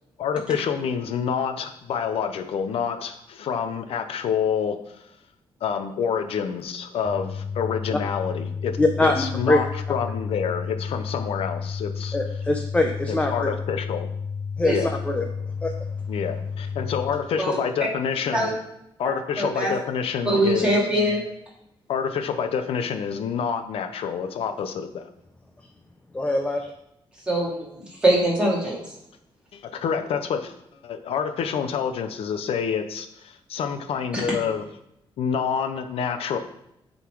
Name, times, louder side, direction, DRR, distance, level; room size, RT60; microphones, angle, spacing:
voice 1, 0.2-4.8 5.6-8.7 9.0-12.2 13.1-14.1 14.7-14.9 16.1-18.6 19.0-20.8 21.9-25.0 29.5-30.5 30.8-34.6 35.2-36.4, left 7 dB, 80° left, 7 dB, 0.8 m, -27 dB
sound 1, 7.1-17.1, left 5 dB, 45° left, 2.3 m, -32 dB
voice 2, 8.8-9.6 12.1-13.5 14.6-14.7 15.0-15.2 15.6-15.7 26.1-26.7, left 2 dB, 15° left, 3 dB, 0.7 m, -22 dB
voice 3, 19.4-19.7 20.2-21.3 27.3-28.8 34.1-34.2, right 1 dB, 10° right, -5 dB, 2.8 m, -22 dB
11.5 x 4.1 x 4.7 m, 0.79 s
wide cardioid pair, 135°, 10 cm